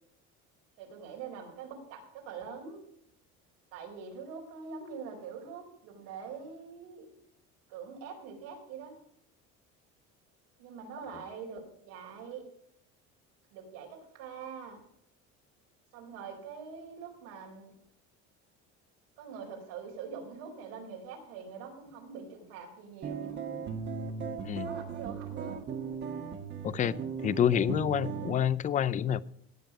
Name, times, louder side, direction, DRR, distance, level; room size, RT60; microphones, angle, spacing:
voice 1, 0.8-2.8 3.7-7.1 7.7-9.0 10.6-12.5 13.5-14.8 15.9-17.7 19.2-23.4 24.6-25.8, right 6 dB, 85° right, 0 dB, 4.7 m, -44 dB
sound 1, 23.0-28.4, right 6 dB, 35° right, 1.6 m, -37 dB
voice 2, 26.6-26.9 27.2-29.2, left 9 dB, 25° left, 18 dB, 0.5 m, -27 dB
17.0 x 7.5 x 5.0 m, 0.71 s
cardioid pair, 135°, 30 cm